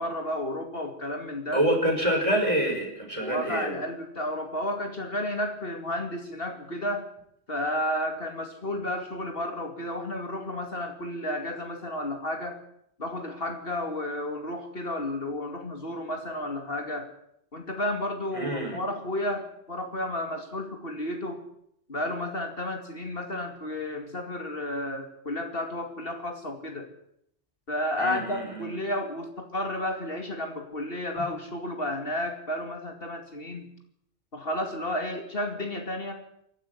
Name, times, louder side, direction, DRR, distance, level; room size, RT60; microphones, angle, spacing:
voice 1, 0.0-1.6 3.2-7.1 7.5-12.6 13.0-17.1 17.5-21.4 21.9-26.9 27.7-33.7 34.3-36.1, left 1 dB, 55° left, 5 dB, 2.7 m, -32 dB
voice 2, 1.5-3.8 18.3-18.8 28.0-28.8 31.2-31.3, right 1 dB, 30° right, 1 dB, 5.7 m, -27 dB
23.5 x 12.0 x 9.8 m, 0.74 s
omnidirectional pair, 1.1 m